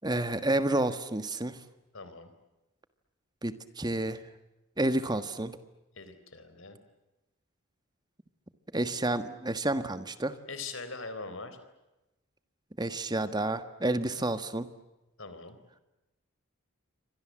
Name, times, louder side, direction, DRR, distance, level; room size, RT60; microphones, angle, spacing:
voice 1, 0.0-1.6 3.4-4.2 4.8-5.5 8.7-10.3 12.8-14.7, right 1 dB, 20° right, 11 dB, 1.4 m, -30 dB
voice 2, 1.9-2.3 6.0-6.8 10.5-11.6 15.2-15.6, left 4 dB, 60° left, 10 dB, 4.1 m, -41 dB
29.5 x 25.0 x 7.6 m, 1.0 s
head